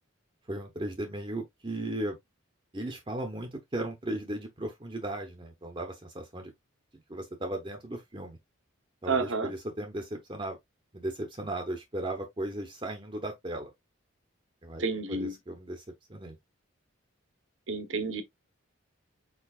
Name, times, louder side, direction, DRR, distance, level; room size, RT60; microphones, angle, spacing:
voice 1, 0.5-2.2 2.7-6.5 7.1-8.4 9.0-10.6 10.9-13.7 14.6-14.8 15.1-15.8 16.1-16.4, right 1 dB, 25° right, 0.8 m, -36 dB
voice 2, 9.1-9.5 14.8-15.3 17.7-18.2, right 4 dB, 65° right, 1.0 m, -30 dB
4.8 x 4.5 x 2.4 m
head